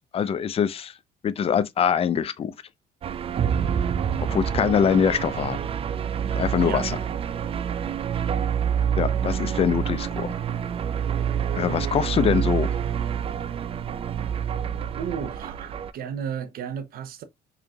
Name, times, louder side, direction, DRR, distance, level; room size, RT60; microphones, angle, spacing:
voice 1, 0.1-0.9 1.2-2.5 4.3-5.6 6.3-7.0 9.0-10.3 11.5-12.7, left 7 dB, 35° left, 0.5 m, -23 dB
sound 1, 3.0-15.9, right 8 dB, 35° right, 0.4 m, -27 dB
voice 2, 14.9-17.2, right 7 dB, 60° right, 0.7 m, -33 dB
4.8 x 3.1 x 2.2 m
cardioid pair, 110°, 17 cm